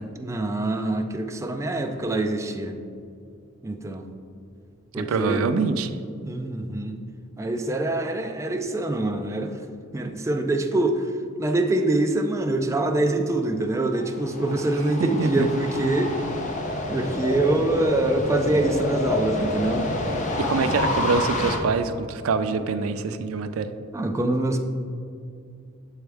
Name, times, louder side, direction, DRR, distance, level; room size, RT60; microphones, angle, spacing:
voice 1, 0.1-2.7 3.6-4.0 4.9-5.5 6.2-6.9 7.4-9.6 9.9-11.1 11.4-16.1 16.9-19.9 20.7-20.8 23.9-24.6, right 2 dB, 15° right, 4 dB, 0.3 m, -25 dB
voice 2, 5.0-5.9 15.0-15.5 20.4-23.7, right 4 dB, 90° right, 10 dB, 0.4 m, -25 dB
sound 1, 13.9-21.6, left 2 dB, 35° left, 0.6 m, -28 dB
6.9 x 4.5 x 3.4 m, 2.4 s
head